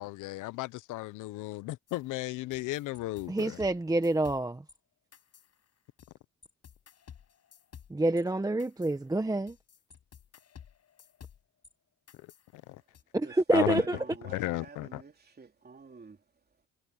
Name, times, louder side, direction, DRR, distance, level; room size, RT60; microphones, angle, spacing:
voice 1, 0.0-3.6 12.5-12.8 13.5-13.8 14.3-15.0, left 18 dB, 90° left, 0.6 m, -34 dB
sound 1, 1.9-4.8 5.1-6.1 6.4-11.7 12.1-13.0, left 8 dB, 55° left, 6.4 m, -54 dB
voice 2, 3.3-4.6 7.9-9.6 13.1-14.0, right 2 dB, 10° right, 1.2 m, -27 dB
voice 3, 13.2-16.2, right 4 dB, 30° right, 3.4 m, -49 dB
cardioid pair, 90°, 30 cm